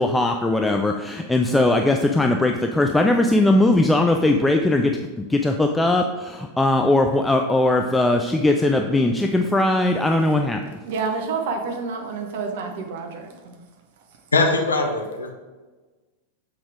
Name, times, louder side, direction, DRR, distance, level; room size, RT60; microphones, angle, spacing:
voice 1, 0.0-10.6, left 2 dB, 10° left, 4 dB, 0.4 m, -19 dB
voice 2, 10.8-13.6, right 4 dB, 55° right, 4 dB, 1.0 m, -28 dB
voice 3, 14.3-15.3, left 3 dB, 75° left, 3 dB, 0.9 m, -21 dB
7.0 x 4.9 x 3.6 m, 1.3 s
figure-of-eight pair, 90°, 0 cm